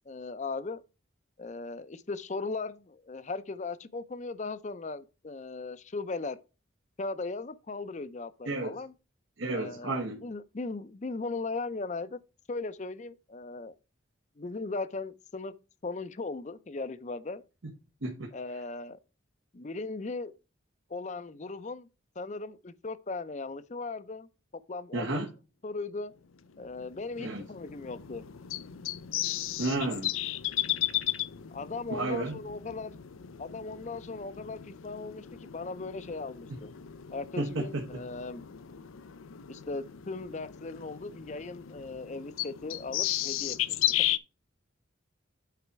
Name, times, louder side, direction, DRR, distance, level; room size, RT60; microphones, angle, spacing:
voice 1, 0.1-0.8 1.4-6.4 7.0-8.9 9.5-12.2 12.5-13.7 14.4-15.5 15.8-17.4 18.3-19.0 19.5-20.3 20.9-21.9 22.2-24.3 24.7-25.2 25.6-26.1 26.6-28.2 31.5-33.0 33.4-36.7 37.1-38.5 39.5-44.1, left 3 dB, 35° left, 0.5 m, -38 dB
voice 2, 9.4-10.2 18.0-18.3 24.9-25.3 27.2-27.4 29.6-30.1 31.9-32.4 37.4-38.0, right 2 dB, 80° right, 1.1 m, -32 dB
sound 1, 26.4-44.2, left 13 dB, 85° left, 0.5 m, -35 dB
8.3 x 4.1 x 4.6 m
head